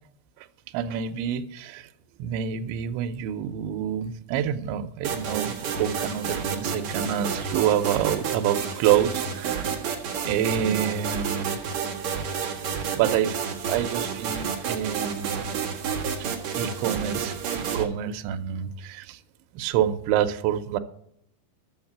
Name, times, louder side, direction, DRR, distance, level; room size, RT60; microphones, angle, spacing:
voice 1, 0.7-1.9 2.2-9.8 10.2-11.6 12.4-12.6 13.0-15.5 16.2-19.2 19.5-20.8, right 10 dB, 90° right, 3.0 m, -27 dB
sound 1, 5.0-17.8, right 6 dB, 60° right, 2.0 m, -30 dB
12.0 x 7.3 x 7.4 m
omnidirectional pair, 5.2 m